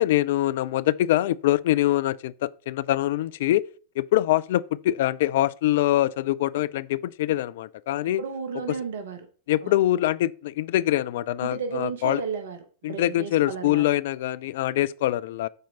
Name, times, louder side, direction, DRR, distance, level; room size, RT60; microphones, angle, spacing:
voice 1, 0.0-3.7 4.0-8.2 9.5-12.2 12.8-15.5, left 14 dB, 55° left, 0.3 m, -24 dB
voice 2, 8.2-9.3 9.6-9.7 11.4-12.6 12.9-13.8, right 6 dB, 60° right, 1.1 m, -33 dB
12.0 x 4.4 x 2.8 m
figure-of-eight pair, 90°, 0 cm